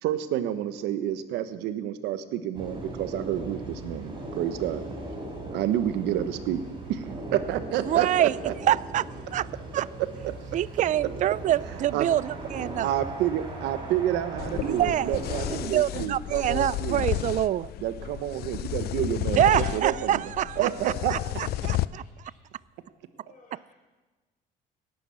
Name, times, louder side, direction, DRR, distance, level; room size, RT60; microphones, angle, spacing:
voice 1, 0.0-4.8 5.5-6.6 6.9-8.5 10.2-10.3 11.9-12.1 12.8-17.0 17.8-20.2 20.6-21.2, right 11 dB, 85° right, 11 dB, 1.2 m, -29 dB
sound 1, 2.5-15.6, right 1 dB, 30° right, 5.1 m, -38 dB
voice 2, 7.9-8.4 8.6-9.5 9.7-9.8 10.5-12.9 14.6-15.2 15.5-17.7 19.3-20.7 21.1-22.0 23.5-23.6, right 12 dB, 45° right, 20 dB, 0.4 m, -25 dB
sound 2, 14.4-21.9, left 15 dB, 70° left, 0.5 m, -32 dB
voice 3, 19.3-20.0 21.2-22.4 23.1-23.8, left 3 dB, 55° left, 1 dB, 5.3 m, -51 dB
18.0 x 11.0 x 7.2 m, 1.2 s
cardioid pair, 110°, 17 cm